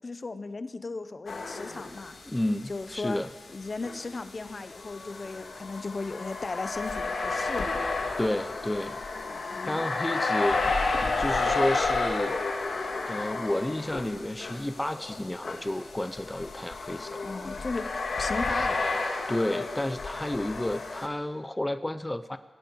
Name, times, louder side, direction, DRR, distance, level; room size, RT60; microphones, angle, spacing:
voice 1, 0.0-2.2 2.7-3.2 3.5-7.8 9.5-9.8 17.2-17.9 18.2-18.8, left 3 dB, 45° left, 12 dB, 0.8 m, -36 dB
sound 1, 1.3-2.4 2.7-2.8 3.8-21.1, left 3 dB, 80° left, 2.0 m, -31 dB
voice 2, 2.3-3.3 8.2-9.0 9.6-10.6 11.2-12.4 13.1-17.2 19.3-22.4, left 1 dB, 15° left, 11 dB, 0.5 m, -31 dB
17.0 x 15.0 x 4.6 m, 1.3 s
wide cardioid pair, 80°, 0 cm